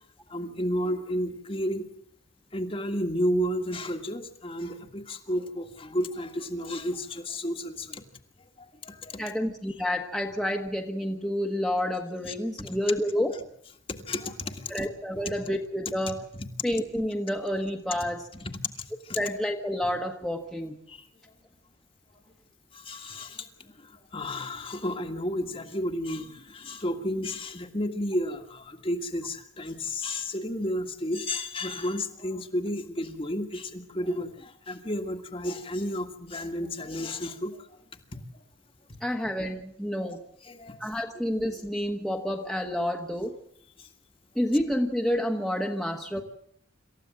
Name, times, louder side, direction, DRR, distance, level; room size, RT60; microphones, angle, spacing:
voice 1, 0.3-1.9 2.5-8.1 8.8-9.2 12.2-12.3 12.7-12.8 13.9-14.9 16.3-16.5 19.0-19.2 20.9-21.0 22.7-37.7 40.0-40.1 40.5-41.0 43.8-43.9, left 1 dB, 25° left, 4 dB, 1.8 m, -32 dB
voice 2, 9.2-13.4 14.7-16.2 16.6-18.3 19.1-20.8 39.0-40.2 40.8-43.4 44.3-46.2, equal, ahead, 0 dB, 1.5 m, -29 dB
27.0 x 14.5 x 7.7 m, 0.68 s
head